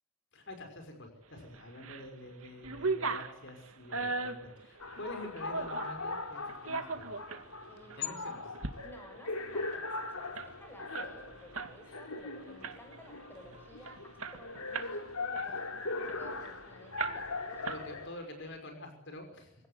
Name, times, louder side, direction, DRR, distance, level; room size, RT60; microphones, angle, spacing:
voice 1, 0.3-7.1 8.0-8.4 17.6-19.6, left 1 dB, 55° left, 5 dB, 5.8 m, -47 dB
sound 1, 1.5-2.1 2.4-6.0 6.5-7.4 7.9-8.0 8.4-8.7 9.0-9.1 9.4-11.7 12.1-12.3 12.6-13.1 13.5-13.6 13.9-15.0 15.3-16.5 17.0-17.4 17.6-18.3, right 3 dB, 75° right, 2.2 m, -38 dB
sound 2, 4.8-18.1, left 3 dB, 85° left, 3.1 m, -40 dB
voice 2, 7.7-8.1 8.8-17.7, left 1 dB, 10° left, 4 dB, 6.6 m, -54 dB
25.5 x 18.0 x 9.7 m, 0.88 s
head